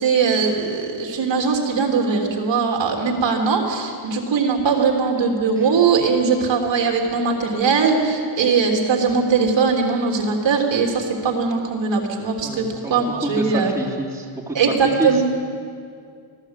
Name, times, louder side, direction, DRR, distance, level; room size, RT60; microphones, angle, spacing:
voice 1, 0.0-13.7 14.5-15.2, right 5 dB, 60° right, 1 dB, 3.2 m, -20 dB
voice 2, 12.4-15.2, right 1 dB, 5° right, -5 dB, 3.4 m, -28 dB
25.5 x 16.0 x 8.2 m, 2.2 s
cardioid pair, 155°, 50 cm